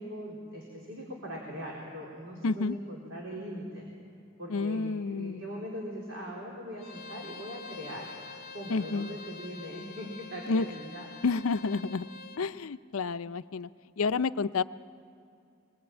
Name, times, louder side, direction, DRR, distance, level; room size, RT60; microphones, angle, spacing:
voice 1, 0.0-3.8 4.4-8.1 8.5-11.1, equal, 70° right, -2 dB, 4.1 m, -40 dB
voice 2, 2.4-2.8 4.5-5.4 8.7-9.1 10.5-10.7 11.2-12.1 12.4-13.7 14.0-14.6, left 4 dB, 85° left, 13 dB, 0.6 m, -29 dB
Bowed string instrument, 6.8-12.4, left 5 dB, 45° left, 0.8 m, -46 dB
25.0 x 21.5 x 9.0 m, 2.5 s
head